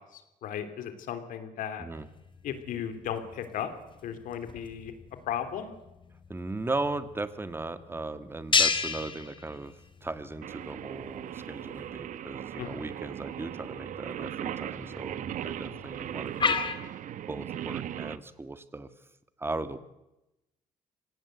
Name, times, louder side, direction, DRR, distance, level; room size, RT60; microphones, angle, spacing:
voice 1, 0.1-1.9 2.4-3.7 4.0-4.9 5.3-5.7 12.6-12.8 15.7-15.8, left 9 dB, 85° left, 9 dB, 3.2 m, -36 dB
sound 1, 2.0-16.8, left 5 dB, 35° left, 2.6 m, -35 dB
voice 2, 6.3-9.7 10.0-16.6 17.3-18.9 19.4-19.8, right 2 dB, 15° right, 10 dB, 1.8 m, -37 dB
Singing, 10.4-18.2, right 11 dB, 70° right, 0.9 m, -38 dB
26.0 x 18.0 x 8.1 m, 0.96 s
cardioid pair, 105°, 14 cm